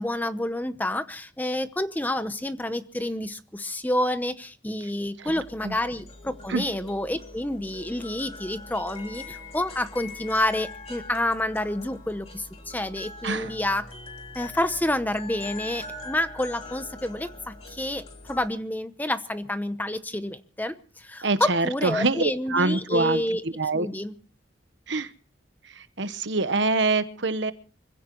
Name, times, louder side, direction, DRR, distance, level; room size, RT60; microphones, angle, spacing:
voice 1, 0.0-13.9 14.3-23.4 23.7-24.1, left 1 dB, 10° left, 11 dB, 0.8 m, -29 dB
voice 2, 5.2-5.8 6.5-6.7 13.2-13.5 21.2-23.9 24.9-25.1 25.6-27.5, right 3 dB, 65° right, 13 dB, 1.0 m, -26 dB
sound 1, 5.3-18.5, left 3 dB, 30° left, 3.1 m, -42 dB
26.0 x 16.0 x 3.0 m, 0.38 s
head